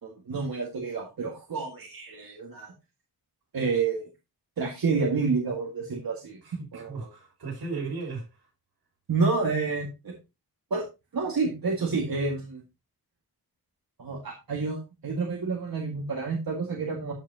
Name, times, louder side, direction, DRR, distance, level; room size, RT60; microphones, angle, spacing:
voice 1, 0.0-2.7 3.5-4.1 4.6-6.4 6.7-7.1 9.1-10.1 10.7-10.8 11.1-12.6 14.0-17.1, right 4 dB, 60° right, 2.1 m, -29 dB
voice 2, 6.4-8.5, right 4 dB, 80° right, 6.6 m, -36 dB
13.5 x 5.9 x 2.9 m
wide cardioid pair, 175°, 39 cm